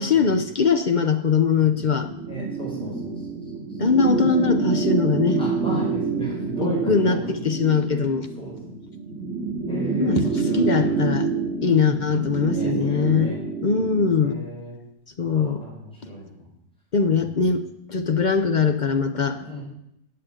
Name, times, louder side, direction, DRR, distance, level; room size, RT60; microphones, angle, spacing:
voice 1, 0.0-2.1 3.8-5.4 6.6-8.3 10.0-11.3 11.6-13.3 13.6-14.4 15.2-15.6 16.0-16.1 16.9-19.4, left 5 dB, 55° left, 7 dB, 0.5 m, -21 dB
sound 1, 1.7-14.1, right 4 dB, 45° right, 3.1 m, -27 dB
voice 2, 2.3-3.1 5.4-7.2 8.4-8.6 9.7-11.0 11.6-12.0 12.3-13.4 13.9-14.7 15.2-16.4 17.2-17.3 19.4-19.6, equal, 5° left, -5 dB, 4.8 m, -35 dB
8.5 x 8.4 x 8.9 m, 0.78 s
omnidirectional pair, 1.8 m